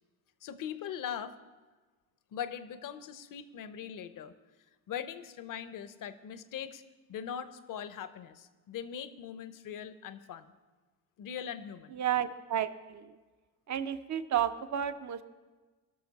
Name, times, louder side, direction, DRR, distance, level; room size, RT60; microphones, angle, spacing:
voice 1, 0.4-1.3 2.3-4.3 4.9-6.8 7.1-10.5 11.2-12.0, left 8 dB, 55° left, 13 dB, 0.8 m, -41 dB
voice 2, 11.9-13.2 13.7-15.2, right 10 dB, 45° right, 12 dB, 0.7 m, -32 dB
19.0 x 6.4 x 4.2 m, 1.3 s
hypercardioid pair, 60°, 40 cm